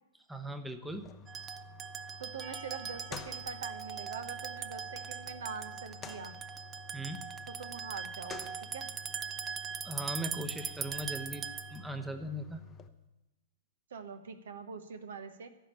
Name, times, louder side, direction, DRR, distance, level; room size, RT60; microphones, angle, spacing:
voice 1, 0.3-1.2 6.9-7.2 9.8-12.7, equal, 5° right, 8 dB, 0.9 m, -39 dB
sound 1, 0.9-12.9, left 5 dB, 20° left, 0.7 m, -51 dB
sound 2, 1.3-11.9, right 7 dB, 20° right, 0.6 m, -41 dB
voice 2, 2.2-6.4 7.5-8.9 13.9-15.5, right 6 dB, 60° right, 11 dB, 1.0 m, -44 dB
Percussion, 2.4-6.9, equal, 40° right, 2.5 m, -57 dB
15.5 x 5.7 x 9.7 m, 1.0 s
figure-of-eight pair, 105°, 0 cm